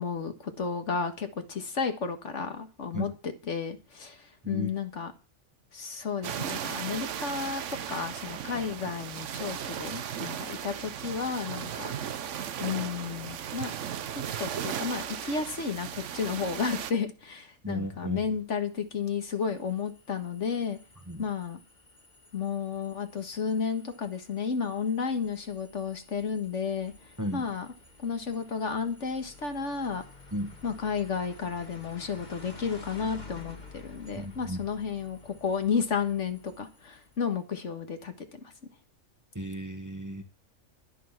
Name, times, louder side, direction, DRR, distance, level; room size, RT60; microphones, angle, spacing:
voice 1, 0.0-3.1 3.5-5.1 5.7-7.6 7.9-11.9 12.6-13.7 14.4-20.8 21.2-21.6 22.3-26.9 27.3-27.7 28.0-30.0 30.6-38.5, left 6 dB, 60° left, 7 dB, 1.9 m, -32 dB
sound 1, 6.2-16.9, right 9 dB, 65° right, 1.1 m, -36 dB
voice 2, 17.6-18.2 21.1-21.3 27.2-27.4 30.3-30.6 34.1-34.6 39.3-40.2, equal, 15° right, 7 dB, 1.3 m, -34 dB
sound 2, 18.7-37.3, left 3 dB, 35° left, 1.8 m, -51 dB
11.5 x 10.0 x 5.9 m, 0.33 s
omnidirectional pair, 1.4 m